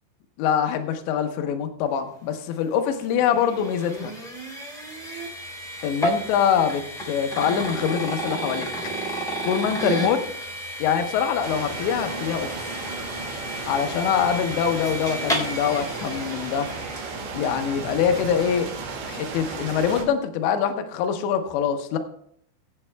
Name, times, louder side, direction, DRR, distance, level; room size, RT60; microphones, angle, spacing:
voice 1, 0.4-4.1 5.8-8.7 9.4-10.3 10.8-12.6 13.7-16.7 17.3-18.7 19.1-22.0, left 8 dB, 75° left, 6 dB, 3.0 m, -24 dB
sound 1, 2.5-17.7, right 1 dB, ahead, 2.3 m, -32 dB
sound 2, 11.4-20.0, right 4 dB, 60° right, 2.3 m, -34 dB
23.0 x 8.6 x 2.2 m, 0.69 s
omnidirectional pair, 5.7 m